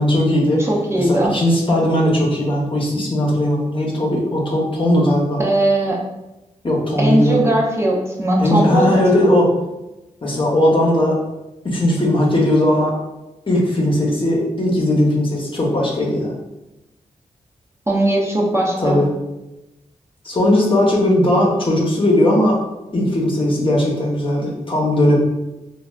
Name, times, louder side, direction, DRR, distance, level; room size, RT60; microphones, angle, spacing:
voice 1, 0.0-0.6 0.9-5.4 6.6-7.5 8.4-9.5 10.2-11.2 11.6-13.0 13.5-16.3 18.8-19.1 20.2-22.6 22.9-25.2, left 1 dB, 40° left, -3 dB, 0.9 m, -18 dB
voice 2, 0.6-1.4 5.4-6.0 7.0-9.3 17.9-19.0, right 1 dB, 20° right, -3 dB, 0.6 m, -19 dB
3.2 x 2.4 x 2.4 m, 0.98 s
cardioid pair, 55°, 14 cm